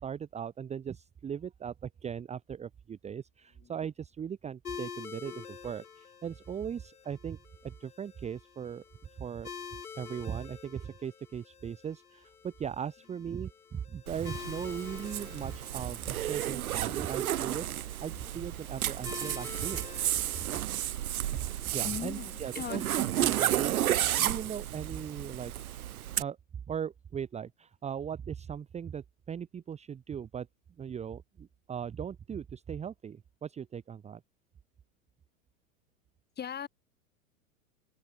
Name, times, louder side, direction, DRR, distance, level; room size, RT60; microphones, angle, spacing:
voice 1, 0.0-8.8 9.2-9.5 9.9-19.9 21.3-21.4 21.7-22.8 23.2-23.9 24.2-25.5 26.2-26.4 26.7-30.5 30.8-34.2, right 8 dB, 15° right, 1.1 m, -39 dB
sound 1, 4.6-23.8, left 7 dB, 85° left, 1.6 m, -48 dB
Zipper (clothing), 14.1-26.2, right 12 dB, 75° right, 0.7 m, -32 dB
voice 2, 16.7-17.2 20.4-21.4 21.8-22.9 36.4-36.7, left 8 dB, 20° left, 5.0 m, -42 dB
figure-of-eight pair, 100°, 43 cm